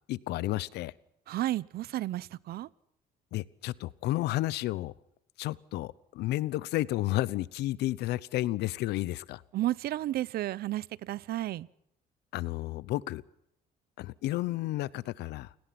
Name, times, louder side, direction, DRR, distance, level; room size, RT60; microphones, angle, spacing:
voice 1, 0.1-0.9 3.3-4.9 5.4-9.4 12.3-13.2 14.0-15.5, left 16 dB, 80° left, 20 dB, 0.9 m, -32 dB
voice 2, 1.3-2.7 9.5-11.7, right 14 dB, 65° right, 21 dB, 0.8 m, -32 dB
29.0 x 18.5 x 6.0 m, 0.76 s
cardioid pair, 110°, 17 cm